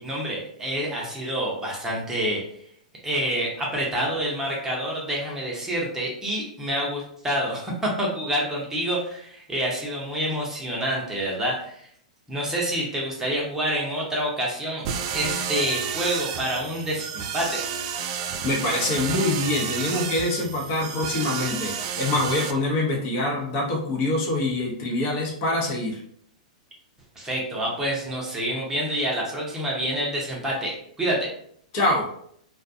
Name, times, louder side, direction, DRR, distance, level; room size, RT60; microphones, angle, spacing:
voice 1, 0.0-2.4 3.0-11.8 12.3-14.9 15.1-17.6 27.2-31.3, right 1 dB, 10° right, -3 dB, 0.7 m, -27 dB
sound 1, 14.8-22.5, right 7 dB, 45° right, 0.3 m, -31 dB
voice 2, 18.4-26.0 31.7-32.1, left 2 dB, 45° left, -1 dB, 0.8 m, -25 dB
2.4 x 2.2 x 2.6 m, 0.67 s
hypercardioid pair, 115°, 4 cm